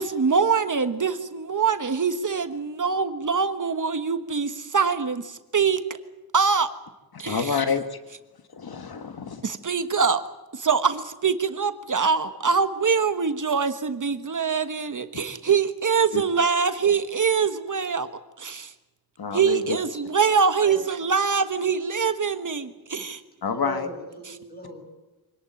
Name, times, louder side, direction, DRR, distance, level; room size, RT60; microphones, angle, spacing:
voice 1, 0.0-5.8 6.3-6.7 7.2-7.6 9.4-10.2 10.5-18.1 18.4-18.7 19.3-23.2, right 5 dB, 50° right, 10 dB, 1.4 m, -24 dB
voice 2, 7.2-8.0 8.5-9.4 16.1-16.2 16.8-16.9 19.2-19.8 23.4-23.9, left 6 dB, 70° left, 8 dB, 1.6 m, -28 dB
voice 3, 20.3-20.8 23.5-24.9, left 1 dB, 25° left, 4 dB, 7.1 m, -38 dB
25.0 x 19.0 x 9.3 m, 1.1 s
wide cardioid pair, 130°, 38 cm